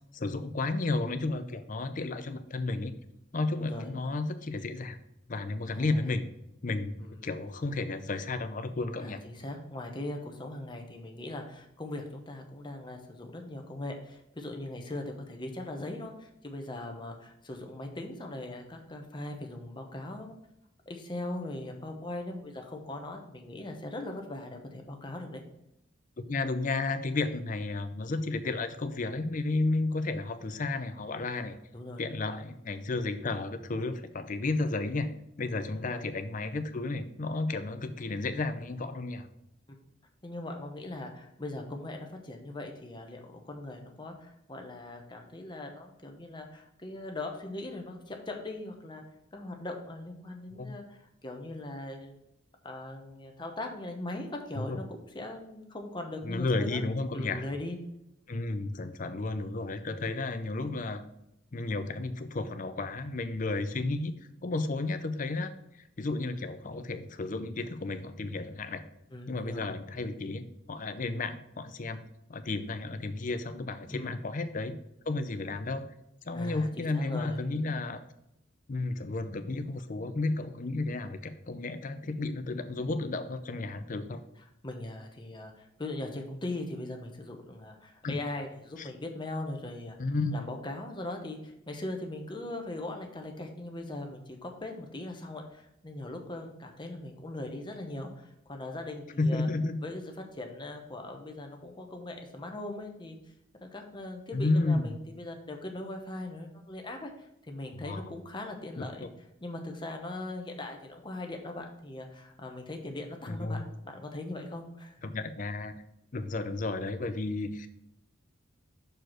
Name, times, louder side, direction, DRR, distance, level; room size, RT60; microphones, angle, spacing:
voice 1, 0.1-2.9 3.3-5.0 5.3-6.3 6.6-9.2 26.2-31.6 32.0-35.1 35.4-39.3 50.6-50.7 54.6-54.8 56.2-57.4 58.3-61.0 61.5-64.1 64.4-65.5 66.0-68.8 69.3-72.0 72.3-74.8 75.1-75.9 76.3-78.0 78.7-84.2 88.0-88.2 88.8-88.9 90.0-90.4 99.2-99.8 104.3-105.0 107.7-108.0 108.8-109.1 113.3-113.6 115.0-115.8 116.1-117.7, left 3 dB, 40° left, 10 dB, 0.5 m, -32 dB
voice 2, 3.6-3.9 5.7-6.1 7.0-7.3 9.0-20.4 20.9-25.4 31.7-32.0 35.8-36.1 37.6-37.9 40.2-49.0 49.3-52.2 52.6-56.8 57.1-57.8 63.6-63.7 69.1-69.7 73.9-74.2 76.3-77.4 84.6-90.0 90.3-99.5 99.8-103.2 103.6-109.1 109.4-115.1, left 2 dB, 25° left, 3 dB, 0.9 m, -40 dB
6.4 x 4.6 x 4.5 m, 0.81 s
head